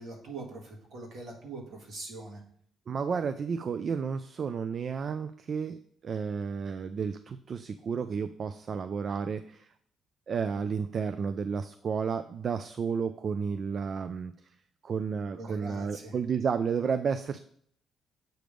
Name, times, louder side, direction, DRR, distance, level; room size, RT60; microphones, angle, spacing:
voice 1, 0.0-2.4 15.3-16.2, right 2 dB, 70° right, 0 dB, 2.0 m, -42 dB
voice 2, 2.9-5.8 6.0-9.7 10.3-14.3 14.8-17.4, right 6 dB, 50° right, 10 dB, 0.3 m, -32 dB
7.7 x 3.4 x 5.1 m, 0.65 s
cardioid pair, 90°, 0 cm